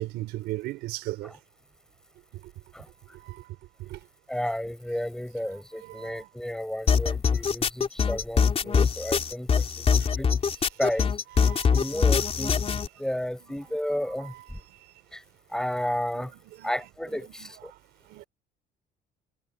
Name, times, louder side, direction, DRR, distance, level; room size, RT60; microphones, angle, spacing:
voice 1, 0.0-1.3 3.3-3.4 3.8-4.0 5.8-6.3 8.6-8.7 11.4-11.8 13.5-13.6 16.1-16.3 16.6-16.7 17.4-17.5 18.1-18.2, right 17 dB, 85° right, 4.3 m, -36 dB
voice 2, 4.3-9.9 10.2-10.3 10.8-11.1 11.7-14.3 15.1-15.2 15.5-16.3 16.6-17.7, equal, 5° left, 6.8 m, -32 dB
sound 1, 6.9-12.9, left 6 dB, 35° left, 4.1 m, -23 dB
cardioid pair, 110°, 17 cm